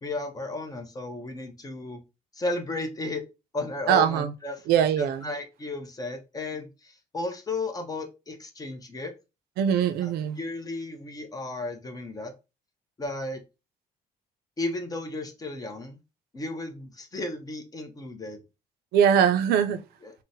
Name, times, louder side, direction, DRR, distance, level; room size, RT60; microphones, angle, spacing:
voice 1, 0.0-2.0 2.3-3.2 3.5-4.7 5.0-9.1 10.0-10.1 10.4-12.3 13.0-13.4 14.6-16.0 16.3-18.4 20.0-20.1, left 2 dB, 25° left, 0.6 m, -34 dB
voice 2, 3.9-4.3 4.7-5.3 9.6-10.4 18.9-19.8, right 9 dB, 85° right, 0.4 m, -22 dB
3.8 x 2.1 x 2.6 m
cardioid pair, 115°, 16 cm